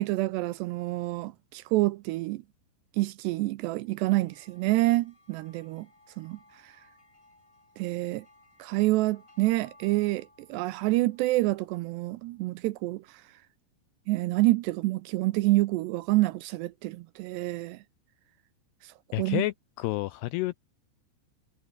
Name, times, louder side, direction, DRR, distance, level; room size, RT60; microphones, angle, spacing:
voice 1, 0.0-2.4 3.0-5.9 6.2-6.7 7.8-8.3 8.6-13.2 14.1-17.8 18.8-19.4, right 19 dB, 85° right, 2.6 m, -27 dB
sound 1, 3.7-12.3, left 2 dB, 15° left, 7.0 m, -61 dB
voice 2, 19.1-20.6, left 18 dB, 85° left, 2.4 m, -30 dB
omnidirectional pair, 5.3 m